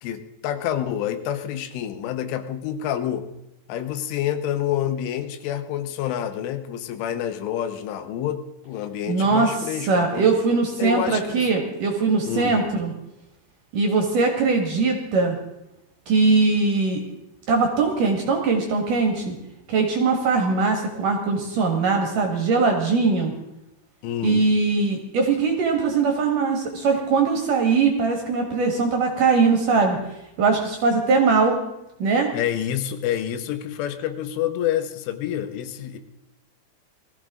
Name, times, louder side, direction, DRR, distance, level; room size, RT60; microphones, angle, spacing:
voice 1, 0.0-3.3 3.7-10.3 10.8-11.5 12.3-12.6 24.0-24.5 32.3-36.0, left 10 dB, 90° left, 8 dB, 3.4 m, -28 dB
voice 2, 9.1-9.5 9.8-12.9 13.7-15.3 16.1-17.0 17.5-19.3 19.7-23.3 24.2-30.0 30.4-31.6 32.0-32.3, right 4 dB, 55° right, 2 dB, 2.7 m, -21 dB
20.0 x 14.0 x 3.7 m, 0.88 s
omnidirectional pair, 5.4 m